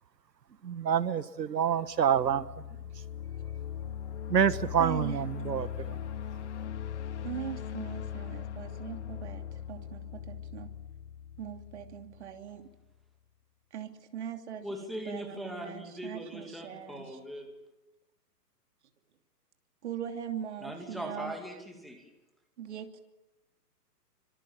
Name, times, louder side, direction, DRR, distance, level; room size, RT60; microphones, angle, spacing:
voice 1, 0.6-2.4 4.3-5.9, right 8 dB, 85° right, 1.5 m, -27 dB
sound 1, 1.9-12.7, left 9 dB, 45° left, 1.9 m, -40 dB
voice 2, 4.8-5.2 6.6-6.8 7.2-10.7 11.4-12.6 13.7-17.2 19.8-21.4 22.6-22.9, right 9 dB, 45° right, 2.9 m, -41 dB
voice 3, 14.6-17.5 20.6-22.1, equal, ahead, 2.3 m, -40 dB
27.5 x 25.5 x 7.3 m
hypercardioid pair, 160°, 49 cm